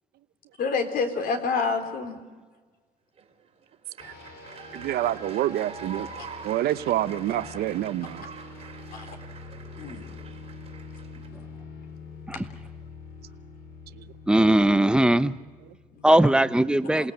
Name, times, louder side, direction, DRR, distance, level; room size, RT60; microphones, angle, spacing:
voice 1, 0.6-2.2 8.9-9.1 9.8-10.1 15.9-16.3 17.0-17.1, left 4 dB, 60° left, 5 dB, 3.8 m, -28 dB
sound 1, 3.2-11.3, right 5 dB, 35° right, 2.8 m, -45 dB
sound 2, 4.0-16.2, left 3 dB, 80° left, 4.9 m, -45 dB
voice 2, 4.7-6.1 6.4-8.2 13.9-14.1 15.6-15.7, right 13 dB, 70° right, 12 dB, 0.8 m, -27 dB
voice 3, 14.3-15.3 16.0-17.1, right 1 dB, 5° right, 13 dB, 0.8 m, -19 dB
28.0 x 19.0 x 8.0 m, 1.4 s
cardioid pair, 110°, 17 cm